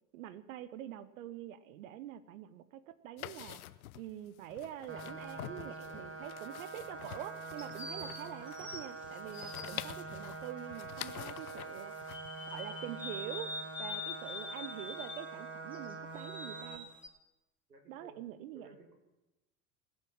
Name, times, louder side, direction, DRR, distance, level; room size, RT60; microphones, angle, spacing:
voice 1, 0.1-3.6 4.0-11.9 12.5-13.5 13.8-16.9 17.9-18.7, right 11 dB, 60° right, 15 dB, 0.9 m, -45 dB
sound 1, 3.2-12.6, left 14 dB, 65° left, 0.7 m, -48 dB
sound 2, 4.9-16.8, right 3 dB, 25° right, 1.9 m, -45 dB
sound 3, 5.2-6.1 7.6-10.0 12.1-15.3 15.7-17.1, left 3 dB, 5° right, 2.9 m, -45 dB
voice 2, 17.7-18.2 18.5-18.9, right 3 dB, 85° right, 2 dB, 2.5 m, -56 dB
20.0 x 7.2 x 7.3 m, 1.0 s
figure-of-eight pair, 70°, 46 cm